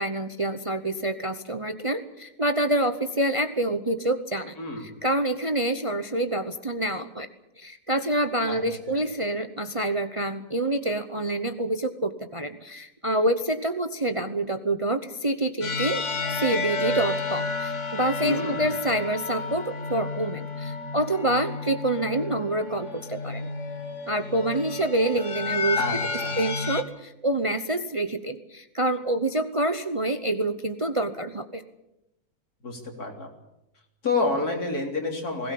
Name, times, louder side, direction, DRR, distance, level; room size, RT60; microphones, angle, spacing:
voice 1, 0.0-4.5 4.8-7.3 7.6-16.0 16.4-23.5 24.1-25.8 26.4-31.6, right 1 dB, 25° right, 9 dB, 0.8 m, -27 dB
sound 1, 15.6-26.8, left 3 dB, 50° left, 1.8 m, -31 dB
voice 2, 18.2-18.7 25.8-26.4 32.6-33.3 34.0-35.5, left 3 dB, 70° left, 2 dB, 4.0 m, -29 dB
20.5 x 17.5 x 8.6 m, 0.89 s
omnidirectional pair, 1.7 m